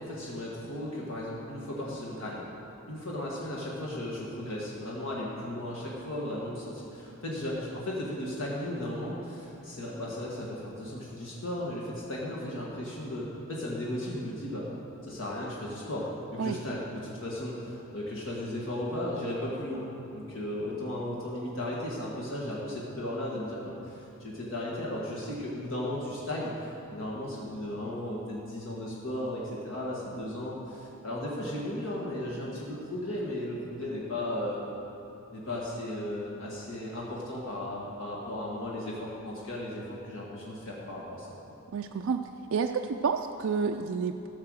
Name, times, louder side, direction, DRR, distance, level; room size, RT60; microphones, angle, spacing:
voice 1, 0.0-2.4 2.9-14.7 15.0-19.8 20.1-34.6 35.3-41.3, left 1 dB, 65° left, -5 dB, 1.7 m, -35 dB
voice 2, 41.7-42.2 42.5-44.3, right 5 dB, 65° right, 4 dB, 0.4 m, -29 dB
14.5 x 6.8 x 6.3 m, 2.9 s
head